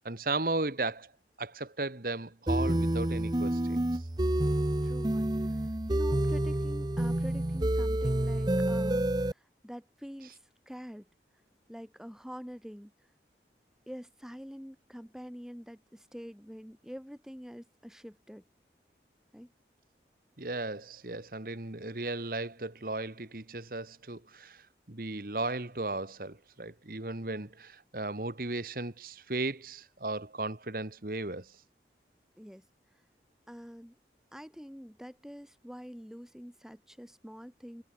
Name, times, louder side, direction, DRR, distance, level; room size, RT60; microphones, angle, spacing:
voice 1, 0.0-1.1 1.4-4.0 20.4-31.5, right 2 dB, 55° right, 1.6 m, -36 dB
sound 1, 2.5-9.3, right 1 dB, 25° right, 0.7 m, -28 dB
voice 2, 4.4-11.1 11.7-12.9 13.9-18.4 19.3-19.5 32.4-32.6 33.5-34.0 34.3-37.8, equal, 5° right, 4.8 m, -46 dB
head